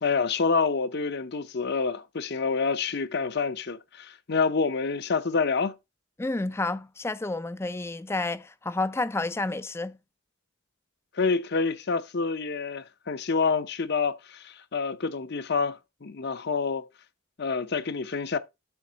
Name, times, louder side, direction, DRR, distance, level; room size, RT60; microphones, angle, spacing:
voice 1, 0.0-5.7 11.1-16.8 17.4-18.4, left 4 dB, 55° left, 0.7 m, -27 dB
voice 2, 6.2-10.0, left 2 dB, 10° left, 0.3 m, -30 dB
7.1 x 3.7 x 6.2 m
head